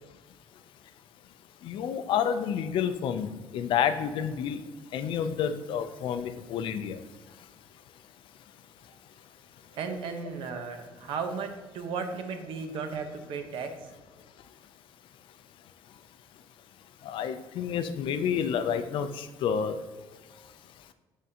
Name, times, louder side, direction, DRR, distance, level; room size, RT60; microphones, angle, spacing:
voice 1, 1.6-3.3 3.5-4.6 4.9-7.0 17.1-19.8, left 8 dB, 65° left, 10 dB, 0.5 m, -29 dB
voice 2, 9.7-13.7, right 5 dB, 65° right, 6 dB, 0.9 m, -35 dB
10.0 x 3.7 x 2.9 m, 1.2 s
cardioid pair, 145°, 9 cm